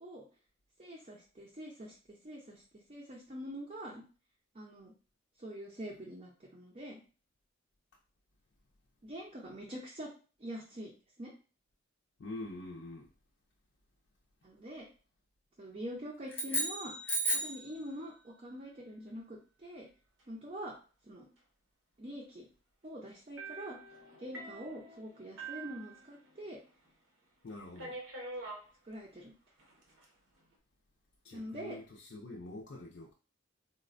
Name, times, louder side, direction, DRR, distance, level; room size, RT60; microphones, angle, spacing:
voice 1, 0.8-1.9 2.2-2.6 2.9-4.0 4.5-4.9 5.4-7.0 9.0-10.1 10.4-10.9 11.2-11.3 14.4-14.9 15.6-16.9 17.3-19.9 20.3-20.7 21.1-21.3 22.0-22.5 22.8-23.8 24.2-26.6 28.8-29.3 31.3-31.8, equal, 30° right, 0.5 m, -44 dB
voice 2, 12.2-13.1 27.4-28.0 31.2-33.1, left 2 dB, 60° left, 0.4 m, -45 dB
sound 1, 16.3-17.7, right 1 dB, 10° left, 0.6 m, -33 dB
sound 2, 23.4-26.6 26.9-27.0 27.8-28.7 29.6-30.0, right 3 dB, 70° right, 0.8 m, -46 dB
4.0 x 2.1 x 2.5 m
head